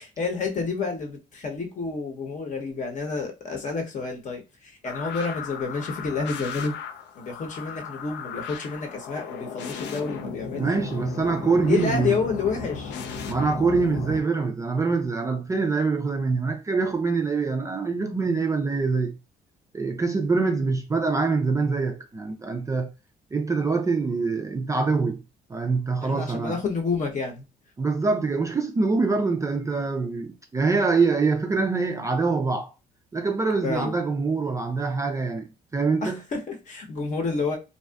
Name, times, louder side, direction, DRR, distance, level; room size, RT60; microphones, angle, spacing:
voice 1, 0.0-6.7 7.2-10.7 11.6-13.0 26.0-27.4 33.6-33.9 36.0-37.6, left 4 dB, 45° left, 0.8 m, -29 dB
sound 1, 4.8-14.2, left 6 dB, 80° left, 0.4 m, -36 dB
voice 2, 10.6-12.1 13.3-19.2 19.7-22.9 23.3-25.2 25.5-26.6 27.8-32.7 33.1-35.5 35.7-36.2, right 4 dB, 20° right, 0.3 m, -24 dB
2.6 x 2.3 x 2.3 m
cardioid pair, 85°, 18 cm